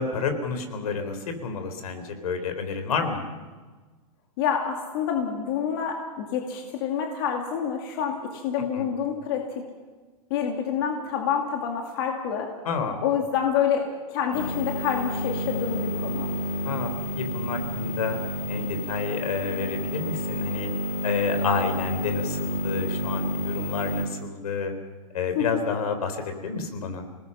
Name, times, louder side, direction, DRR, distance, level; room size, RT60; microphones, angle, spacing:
voice 1, 0.0-3.2 8.7-8.9 12.6-13.0 16.6-16.9 17.2-18.2 18.5-20.7 21.0-24.7 25.1-27.1, left 5 dB, 70° left, 7 dB, 4.2 m, -29 dB
voice 2, 4.4-9.4 10.3-12.5 13.0-13.8 14.1-16.3 25.4-25.5, left 8 dB, 40° left, 1 dB, 2.4 m, -27 dB
sound 1, 14.3-24.1, equal, 20° left, 1.9 m, -30 dB
27.0 x 19.0 x 5.7 m, 1.3 s
supercardioid pair, 175°, 19 cm